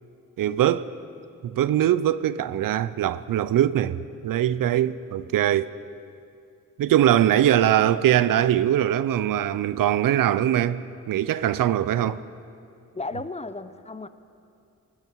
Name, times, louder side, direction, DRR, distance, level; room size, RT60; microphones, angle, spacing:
voice 1, 0.4-0.9 1.4-5.7 6.8-10.8 11.1-12.2, right 11 dB, 80° right, 0.5 m, -22 dB
voice 2, 12.9-14.1, left 3 dB, 20° left, 0.6 m, -34 dB
19.5 x 12.5 x 4.6 m
cardioid pair, 65°, 32 cm